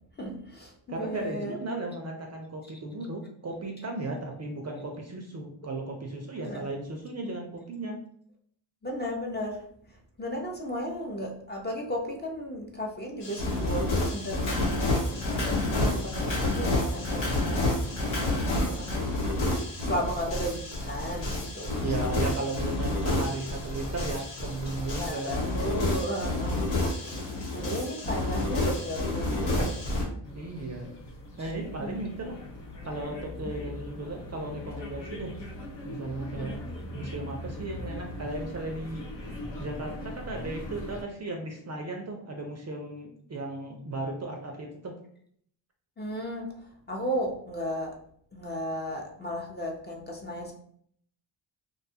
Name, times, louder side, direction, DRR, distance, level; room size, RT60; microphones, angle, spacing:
voice 1, 0.2-1.6 6.4-6.7 8.8-9.6 10.2-18.0 18.6-21.7 22.0-22.4 25.0-27.2 27.5-29.8 31.8-32.0 36.4-36.6 46.0-46.5 46.9-47.9 48.3-50.5, equal, 20° left, 0 dB, 0.6 m, -35 dB
voice 2, 0.9-8.0 17.3-17.8 21.8-25.4 30.1-30.9 31.4-32.4 32.8-35.3 35.8-36.6 36.9-44.9, right 2 dB, 35° right, 2 dB, 0.5 m, -36 dB
sound 1, 13.2-30.0, left 2 dB, 80° left, 1.1 m, -29 dB
sound 2, 30.2-41.0, left 1 dB, 60° left, 0.7 m, -40 dB
2.6 x 2.3 x 2.7 m, 0.63 s
cardioid pair, 65°, 49 cm